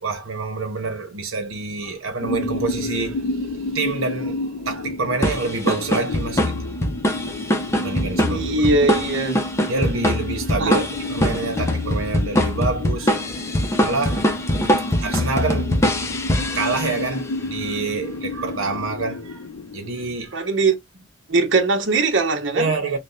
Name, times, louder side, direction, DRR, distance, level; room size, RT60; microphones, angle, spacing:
voice 1, 0.0-6.6 7.7-8.9 9.7-13.2 13.8-14.2 14.7-15.7 16.5-19.4 19.7-20.5 22.5-23.0, right 4 dB, 90° right, 0.8 m, -27 dB
sound 1, 2.2-20.2, left 2 dB, 70° left, 0.4 m, -31 dB
sound 2, 5.2-17.2, left 1 dB, 15° left, 0.6 m, -23 dB
voice 2, 8.2-9.4 10.6-10.8 20.3-20.7 21.3-22.7, right 3 dB, 65° right, 0.9 m, -20 dB
3.3 x 2.1 x 3.8 m
head